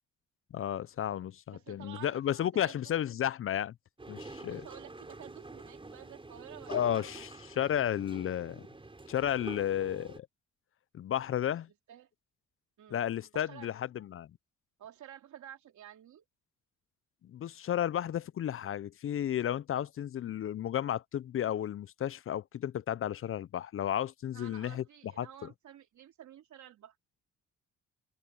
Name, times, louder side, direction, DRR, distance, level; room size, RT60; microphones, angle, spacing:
voice 1, 0.5-3.7 4.1-4.6 6.7-8.6 9.1-10.3 10.9-11.7 12.9-14.3 17.2-24.8 25.2-25.3, left 10 dB, 45° left, 0.5 m, -33 dB
voice 2, 1.5-2.9 4.4-7.2 11.9-12.1 12.8-13.0 13.3-13.7 14.8-16.3 24.3-27.0, right 11 dB, 70° right, 3.6 m, -51 dB
sound 1, 4.0-10.2, right 2 dB, 15° right, 4.4 m, -47 dB
open air
cardioid pair, 90°, 30 cm